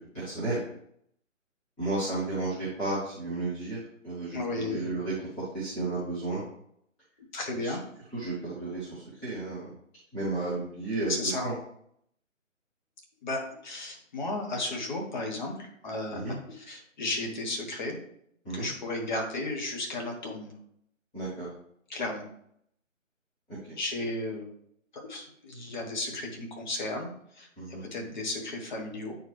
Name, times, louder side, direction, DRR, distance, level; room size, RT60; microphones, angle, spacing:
voice 1, 0.1-0.6 1.8-3.8 4.0-5.1 5.5-6.4 7.6-7.7 8.1-9.7 10.1-11.1 11.4-11.5 16.1-16.3 18.4-18.7 21.1-21.5 27.6-27.8, right 2 dB, 5° left, -13 dB, 0.7 m, -32 dB
voice 2, 4.3-4.8 7.3-7.8 11.1-11.4 13.2-18.0 18.5-20.5 21.9-22.2 23.8-24.5 24.9-27.5 27.8-29.2, left 2 dB, 35° left, 1 dB, 1.4 m, -34 dB
8.6 x 4.5 x 3.2 m, 0.70 s
figure-of-eight pair, 155°, 40 cm